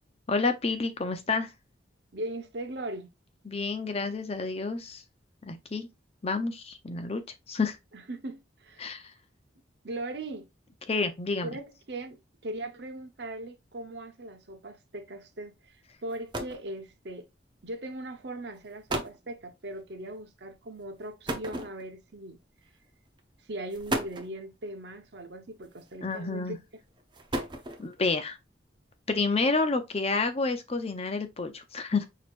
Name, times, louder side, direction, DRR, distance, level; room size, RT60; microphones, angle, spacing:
voice 1, 0.3-1.5 3.4-5.0 5.4-5.9 6.2-7.2 7.5-7.8 8.8-9.1 10.9-11.5 26.0-26.6 27.8-28.4 29.1-32.1, left 3 dB, 30° left, 0.6 m, -29 dB
voice 2, 2.1-3.1 7.9-9.0 9.8-10.5 11.4-15.8 16.0-17.3 17.6-22.4 23.5-26.6, right 1 dB, 60° right, 0.8 m, -39 dB
sound 1, 15.7-15.8 16.1-16.7 17.7-17.9 18.5-18.6 18.9-19.2 21.3-22.1 23.1-23.2 23.7-24.4 25.6-26.1 27.0-28.0, right 1 dB, 25° right, 0.6 m, -34 dB
6.2 x 2.9 x 2.5 m
head